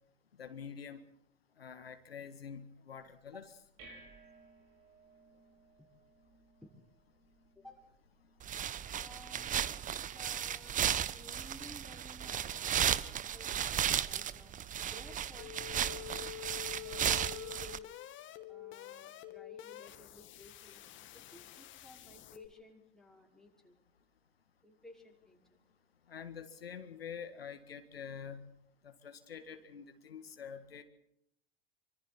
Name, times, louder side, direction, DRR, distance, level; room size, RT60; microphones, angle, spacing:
voice 1, 0.3-1.0 1.5-3.5 8.2-8.3 8.7-8.8 26.0-28.6 28.8-30.8, left 7 dB, 80° left, 8 dB, 1.9 m, -47 dB
sound 1, 3.0-13.9, right 2 dB, 50° right, 7.6 m, -63 dB
sound 2, 8.4-17.8, right 9 dB, 25° right, 1.0 m, -35 dB
voice 2, 9.0-14.5 14.8-17.9 18.5-20.8 21.1-23.8 24.6-25.6, left 1 dB, ahead, 0 dB, 5.6 m, -57 dB
sound 3, 15.4-22.5, left 13 dB, 40° left, 2.4 m, -48 dB
26.0 x 25.0 x 4.4 m, 0.73 s
figure-of-eight pair, 80°, 29 cm